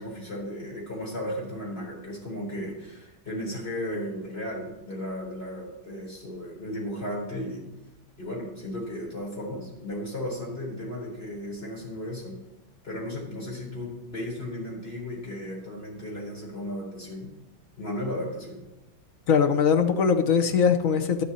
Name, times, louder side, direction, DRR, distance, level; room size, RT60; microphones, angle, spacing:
voice 1, 0.0-7.7 8.2-12.4 12.8-17.3 17.8-18.6, left 1 dB, 30° left, -3 dB, 4.2 m, -35 dB
voice 2, 19.3-21.2, left 6 dB, 60° left, 7 dB, 0.9 m, -21 dB
11.5 x 11.0 x 4.2 m, 0.98 s
omnidirectional pair, 2.1 m